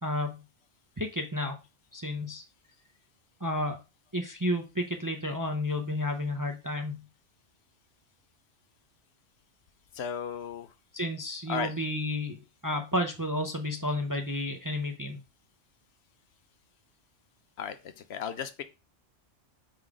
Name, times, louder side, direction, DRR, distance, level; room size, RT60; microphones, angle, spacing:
voice 1, 0.0-0.4 1.0-1.6 1.9-2.4 3.4-3.8 4.1-7.0 10.9-12.4 12.6-15.2, left 1 dB, 25° right, 4 dB, 0.5 m, -31 dB
voice 2, 9.9-10.7 11.5-11.8 17.6-18.6, left 7 dB, 65° left, 10 dB, 0.8 m, -35 dB
4.8 x 4.0 x 4.8 m, 0.29 s
omnidirectional pair, 1.2 m